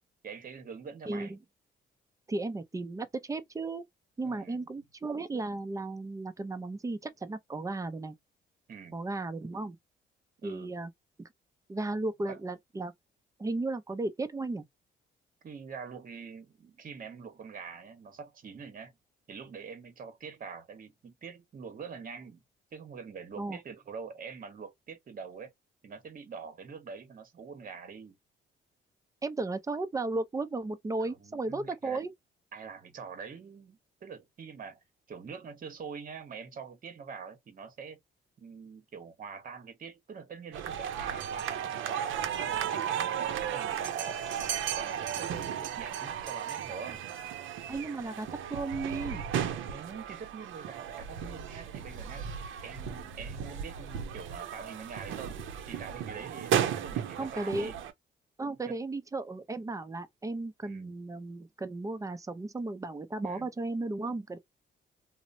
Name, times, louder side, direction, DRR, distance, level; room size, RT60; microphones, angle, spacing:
voice 1, 0.2-1.4 4.2-4.7 8.7-9.0 10.4-10.8 12.2-12.4 15.4-18.9 19.3-22.4 22.7-25.5 25.8-28.2 31.0-32.0 32.5-38.0 38.4-44.2 44.8-47.0 49.7-52.3 52.6-57.8 58.7-58.8 60.6-61.0 63.2-63.5, right 6 dB, 45° right, 0.9 m, -45 dB
voice 2, 1.1-1.4 2.3-3.8 4.2-8.1 8.9-9.8 10.4-10.9 11.2-11.3 11.7-12.9 13.4-14.6 23.4-23.6 29.2-32.1 47.7-49.3 57.2-57.7 58.4-64.4, right 2 dB, 15° right, 0.5 m, -35 dB
sound 1, 40.5-57.9, right 9 dB, 75° right, 0.6 m, -35 dB
2.9 x 2.0 x 2.5 m
cardioid pair, 90°, 20 cm